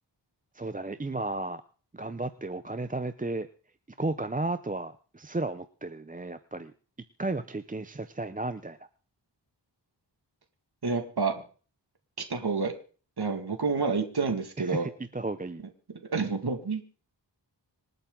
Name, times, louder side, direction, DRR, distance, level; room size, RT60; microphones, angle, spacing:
voice 1, 0.5-1.6 1.9-3.5 4.0-6.7 7.2-8.8 14.6-15.6, right 2 dB, 20° right, 10 dB, 0.7 m, -33 dB
voice 2, 10.8-11.4 12.3-12.7 13.2-14.9 16.1-16.8, right 4 dB, 60° right, 5 dB, 2.2 m, -28 dB
26.5 x 9.0 x 3.9 m, 0.40 s
wide cardioid pair, 70°, 44 cm